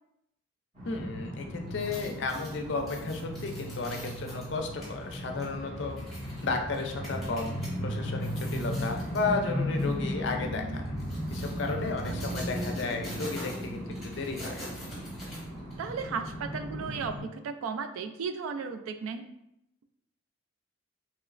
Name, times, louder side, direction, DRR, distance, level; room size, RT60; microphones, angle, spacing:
sound 1, 0.7-17.2, equal, 40° right, 1.3 m, -36 dB
voice 1, 0.8-6.0 6.4-7.6 7.8-10.8 11.3-14.6, left 3 dB, 60° left, 3 dB, 0.4 m, -33 dB
sound 2, 1.7-7.7 8.1-9.3 9.7-9.9 10.8-15.9 16.3-16.4, left 1 dB, ahead, 0.9 m, -46 dB
voice 2, 15.8-19.3, right 5 dB, 90° right, 9 dB, 0.3 m, -35 dB
3.0 x 3.0 x 2.4 m, 0.83 s
head